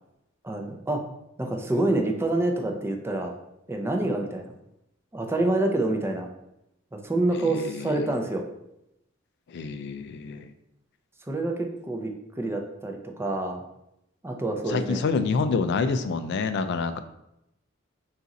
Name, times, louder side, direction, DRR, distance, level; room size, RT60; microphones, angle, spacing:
voice 1, 0.4-1.0 1.4-3.3 3.7-4.5 5.1-6.3 6.9-8.4 11.3-12.1 12.4-13.6 14.2-15.1, right 2 dB, 10° right, 3 dB, 0.4 m, -27 dB
voice 2, 7.4-8.1 9.5-10.5 14.7-17.0, left 4 dB, 55° left, 9 dB, 0.3 m, -27 dB
3.8 x 2.5 x 4.0 m, 0.85 s
head